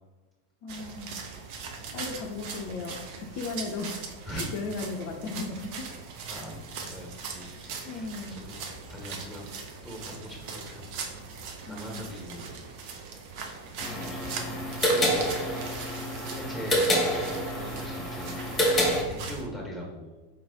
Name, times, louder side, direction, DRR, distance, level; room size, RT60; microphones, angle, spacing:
voice 1, 0.6-1.2 1.9-3.9 4.3-5.9 7.8-8.4 11.7-12.1 13.9-14.1, left 3 dB, 45° left, 3 dB, 0.4 m, -36 dB
sound 1, 0.7-19.5, right 5 dB, 45° right, 0.6 m, -40 dB
voice 2, 6.3-8.6 8.9-9.5 9.8-11.0 11.6-12.6 13.9-15.6 16.3-16.9 17.2-18.4 19.1-20.2, equal, 5° right, -2 dB, 1.5 m, -42 dB
sound 2, 13.8-19.0, equal, 15° left, 1.1 m, -27 dB
4.5 x 3.1 x 3.7 m, 1.1 s
figure-of-eight pair, 90°, 0 cm